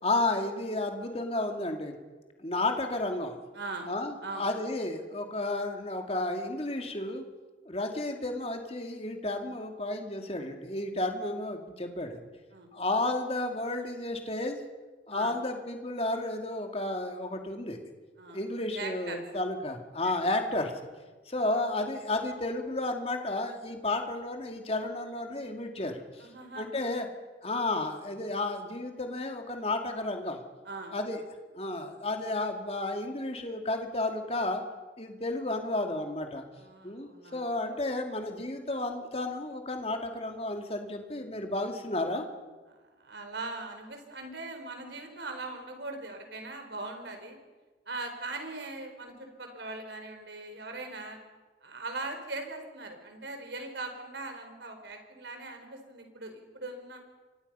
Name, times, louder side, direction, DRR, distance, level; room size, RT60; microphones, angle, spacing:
voice 1, 0.0-1.9 2.4-3.4 3.9-7.2 7.7-12.2 12.7-14.6 15.1-17.8 18.3-20.7 21.3-26.3 26.6-27.1 27.4-30.4 30.9-31.2 31.6-34.6 35.0-36.4 36.8-42.3, left 2 dB, 30° left, 4 dB, 2.4 m, -32 dB
voice 2, 3.5-3.9 4.2-4.6 12.5-12.7 15.1-15.3 18.2-18.4 18.7-19.2 20.0-20.1 26.2-26.9 30.6-30.9 36.5-37.5 42.8-47.4 47.9-51.2 51.6-57.0, right 3 dB, 65° right, 5 dB, 4.5 m, -40 dB
29.5 x 25.0 x 5.6 m, 1.3 s
head